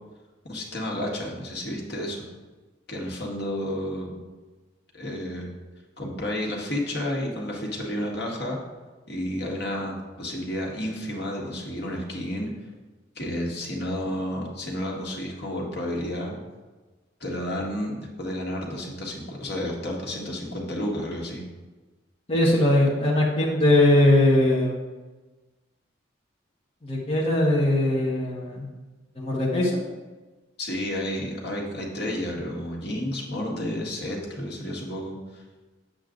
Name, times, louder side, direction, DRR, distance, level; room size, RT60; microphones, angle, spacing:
voice 1, 0.4-2.3 2.9-4.2 4.9-5.5 6.0-8.6 9.1-12.5 13.2-16.3 17.2-21.4 30.6-35.4, left 1 dB, 55° left, -1 dB, 1.8 m, -31 dB
voice 2, 22.3-24.7 26.8-28.7 29.2-29.7, left 1 dB, 30° left, -5 dB, 1.3 m, -20 dB
8.7 x 7.6 x 3.9 m, 1.3 s
head